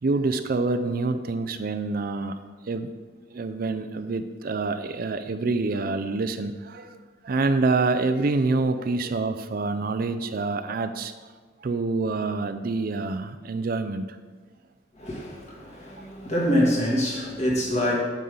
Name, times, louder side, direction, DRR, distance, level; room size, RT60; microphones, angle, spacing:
voice 1, 0.0-2.4 2.6-2.9 3.3-11.1 11.6-14.2, right 3 dB, 50° right, 0.4 m, -26 dB
voice 2, 14.9-17.9, equal, 35° left, 2.2 m, -25 dB
9.4 x 8.3 x 3.8 m
head